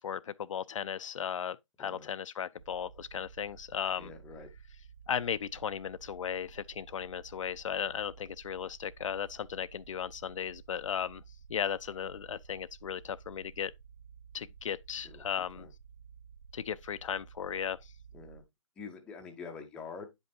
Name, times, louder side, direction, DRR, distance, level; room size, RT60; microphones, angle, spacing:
voice 1, 0.0-4.1 5.1-11.2 11.5-13.7 14.3-15.7 16.5-17.8, left 8 dB, 75° left, 0.4 m, -36 dB
sound 1, 2.6-18.4, right 7 dB, 65° right, 0.6 m, -54 dB
voice 2, 4.0-4.5 15.0-15.7 18.1-18.4 18.8-20.1, left 5 dB, 5° left, 0.5 m, -46 dB
8.7 x 5.3 x 2.6 m
hypercardioid pair, 160°, 17 cm